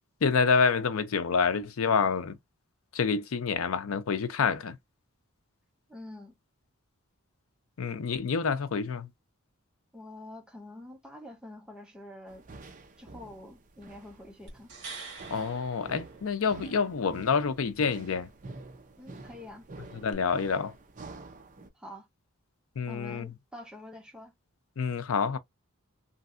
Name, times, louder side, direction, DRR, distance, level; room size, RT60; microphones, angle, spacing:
voice 1, 0.2-2.4 2.9-4.8 7.8-9.1 15.3-18.3 20.0-20.7 22.8-23.3 24.8-25.4, left 5 dB, 75° left, 0.5 m, -27 dB
voice 2, 5.9-6.4 9.9-12.4 13.0-14.7 19.0-19.7 21.7-22.1 22.9-24.3, left 1 dB, 5° right, 0.7 m, -46 dB
sound 1, 12.3-21.7, right 3 dB, 35° right, 0.6 m, -48 dB
sound 2, 14.5-16.7 20.1-20.2, right 4 dB, 55° right, 1.7 m, -45 dB
3.1 x 2.6 x 2.5 m
head